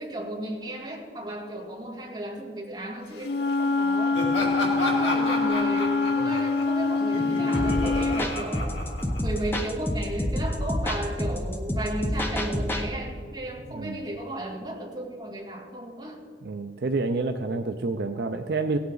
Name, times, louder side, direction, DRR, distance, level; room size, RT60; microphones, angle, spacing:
voice 1, 0.0-4.2 4.8-8.8 9.2-16.2, right 1 dB, 25° right, -2 dB, 1.9 m, -34 dB
Wind instrument woodwind instrument, 3.2-8.2, left 3 dB, 65° left, 0.5 m, -25 dB
Laughter, 4.1-9.6, left 1 dB, 85° left, 2.5 m, -31 dB
sound 1, 7.5-12.9, left 1 dB, 10° left, 0.8 m, -28 dB
voice 2, 16.4-18.8, right 3 dB, 60° right, 7 dB, 0.4 m, -28 dB
17.0 x 8.5 x 3.9 m, 2.3 s
head